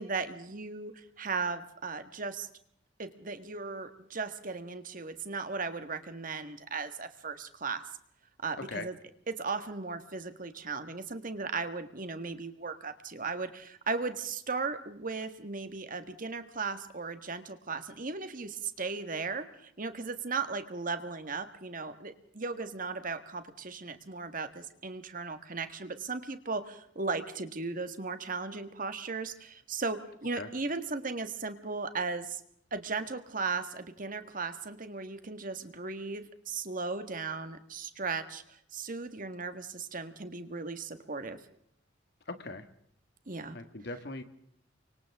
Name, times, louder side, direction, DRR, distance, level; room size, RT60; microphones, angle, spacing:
voice 1, 0.0-2.5 3.0-7.8 8.4-9.0 9.3-32.4 32.7-41.4 43.3-43.6, right 4 dB, 45° right, 9 dB, 1.7 m, -36 dB
voice 2, 42.3-42.6 43.5-44.2, left 2 dB, 60° left, 8 dB, 1.9 m, -39 dB
29.5 x 24.5 x 3.7 m, 0.69 s
head